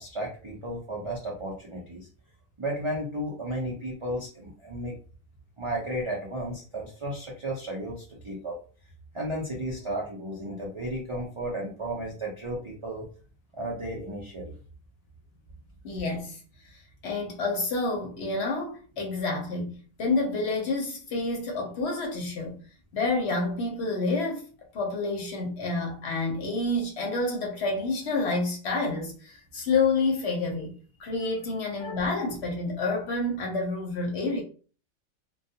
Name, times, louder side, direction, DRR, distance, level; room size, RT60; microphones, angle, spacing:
voice 1, 0.0-2.1 2.6-5.0 5.6-8.6 9.1-13.0 13.5-14.5 31.2-31.3, right 1 dB, 55° right, 0.3 m, -34 dB
voice 2, 15.8-16.4 17.0-19.7 20.0-22.6 22.9-24.4 24.7-30.7 31.0-34.4, left 3 dB, 60° left, 0.8 m, -28 dB
2.3 x 2.2 x 2.7 m
omnidirectional pair, 1.4 m